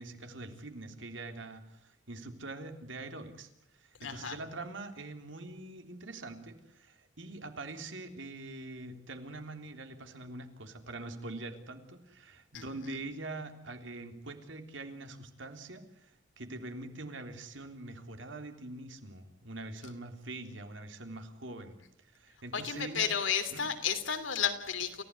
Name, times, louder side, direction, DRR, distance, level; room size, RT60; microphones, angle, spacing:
voice 1, 0.0-23.1 23.5-23.7, right 2 dB, 75° right, 6 dB, 3.6 m, -44 dB
voice 2, 4.0-4.3 12.5-12.6 22.5-25.0, left 7 dB, 80° left, 7 dB, 3.1 m, -32 dB
29.0 x 16.0 x 9.8 m, 0.85 s
head